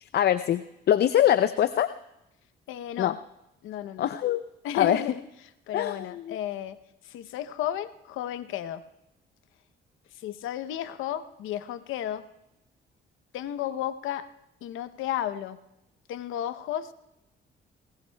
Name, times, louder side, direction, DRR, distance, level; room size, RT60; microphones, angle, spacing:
voice 1, 0.0-1.9 3.0-3.1 4.0-4.4 4.7-5.0 5.7-6.4, left 11 dB, 55° left, 12 dB, 0.5 m, -24 dB
voice 2, 2.7-3.2 3.6-4.1 4.6-5.2 5.7-6.8 7.0-8.8 10.1-12.2 13.3-14.3 14.6-15.6 16.1-16.9, left 11 dB, 90° left, 13 dB, 0.7 m, -33 dB
20.0 x 18.5 x 2.2 m, 0.91 s
cardioid pair, 90°, 20 cm